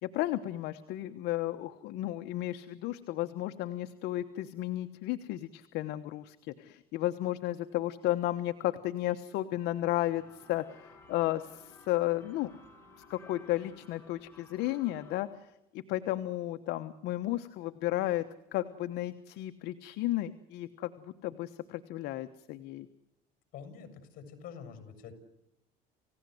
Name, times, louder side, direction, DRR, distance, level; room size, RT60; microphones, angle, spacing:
voice 1, 0.0-12.5 13.0-22.9, left 15 dB, 75° left, 8 dB, 1.2 m, -33 dB
sound 1, 9.8-15.3, left 3 dB, 15° left, 7.5 m, -56 dB
voice 2, 23.5-25.1, left 7 dB, 55° left, 10 dB, 6.5 m, -46 dB
29.5 x 16.5 x 7.9 m, 0.89 s
cardioid pair, 135°, 17 cm